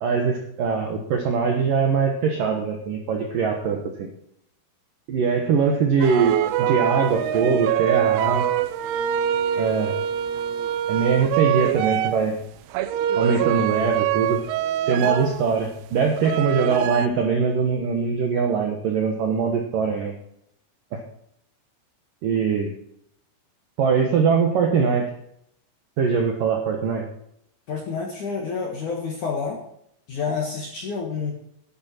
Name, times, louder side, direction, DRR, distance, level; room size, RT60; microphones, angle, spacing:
voice 1, 0.0-4.1 5.1-8.5 9.6-10.0 10.9-12.4 13.2-14.4 14.9-20.1 20.9-21.0 22.2-22.7 23.8-25.1 26.0-27.0, right 5 dB, 70° right, 2 dB, 2.1 m, -22 dB
sound 1, 6.0-12.3 12.7-15.6 16.2-17.1, right 10 dB, 90° right, 3.6 m, -24 dB
voice 2, 27.7-29.6 30.1-31.3, left 5 dB, 55° left, 0 dB, 2.2 m, -28 dB
11.5 x 11.5 x 4.5 m, 0.72 s
omnidirectional pair, 6.0 m